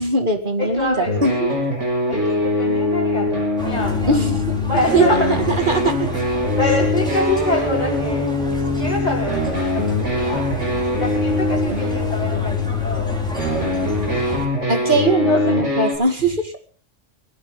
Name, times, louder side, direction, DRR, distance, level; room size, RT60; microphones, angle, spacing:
voice 1, 0.0-1.5 4.1-4.4 4.9-5.0 5.7-6.1 6.6-6.8 14.7-16.6, right 2 dB, 40° right, 6 dB, 2.3 m, -20 dB
voice 2, 0.6-1.3 2.1-4.2 4.6-5.7 6.6-10.5 10.9-13.9 15.2-15.6, left 2 dB, 30° left, -6 dB, 4.7 m, -26 dB
sound 1, 1.1-16.0, left 2 dB, 70° right, 6.3 m, -22 dB
sound 2, 3.6-14.5, right 1 dB, 5° left, 4.5 m, -31 dB
21.0 x 16.5 x 3.8 m, 0.42 s
omnidirectional pair, 1.3 m